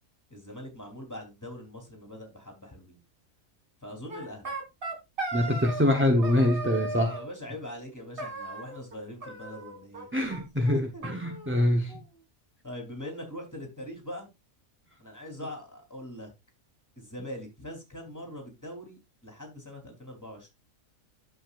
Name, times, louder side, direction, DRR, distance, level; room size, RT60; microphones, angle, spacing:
voice 1, 0.3-3.0 3.8-4.5 7.1-10.1 10.9-11.0 12.6-14.3 15.0-16.3 17.0-20.5, left 1 dB, 10° left, 3.4 m, -42 dB
sound 1, 4.1-6.0 6.2-7.3 8.2-9.0 9.2-10.1 10.3-10.4 10.7-10.8 11.0-12.1, right 2 dB, 40° right, 2.4 m, -37 dB
voice 2, 5.3-7.2 10.1-11.9, left 1 dB, 10° right, 0.8 m, -24 dB
11.0 x 7.3 x 2.5 m
omnidirectional pair, 1.5 m